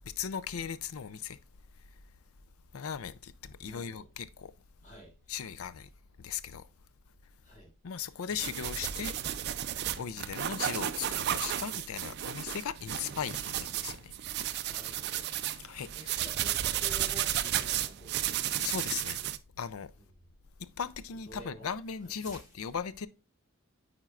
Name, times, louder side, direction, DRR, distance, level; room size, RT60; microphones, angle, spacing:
voice 1, 0.2-1.4 2.7-4.5 5.3-5.9 6.2-6.6 7.8-9.1 10.0-14.1 15.6-16.2 18.6-19.2 19.6-19.9 20.6-23.1, left 7 dB, 90° left, 0.5 m, -38 dB
voice 2, 3.6-4.1 4.8-5.6 7.4-7.7 14.6-15.6 15.9-18.7 21.2-21.7 22.0-22.5, right 1 dB, 35° left, 2.9 m, -51 dB
sound 1, 8.3-19.4, right 11 dB, 50° right, 0.4 m, -33 dB
9.1 x 4.4 x 2.4 m
head